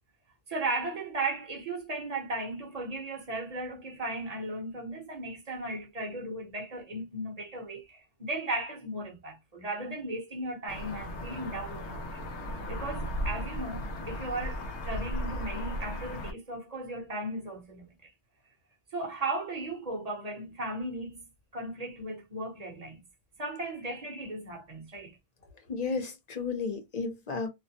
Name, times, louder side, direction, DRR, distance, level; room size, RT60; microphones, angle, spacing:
voice 1, 0.5-12.2 12.7-18.1 18.9-21.2 21.5-23.0 23.4-25.2, right 2 dB, 40° right, 0.8 m, -36 dB
sound 1, 10.7-16.3, equal, 75° left, 0.9 m, -36 dB
voice 2, 25.7-27.5, left 4 dB, 40° left, 0.7 m, -33 dB
2.4 x 2.1 x 2.7 m
omnidirectional pair, 1.2 m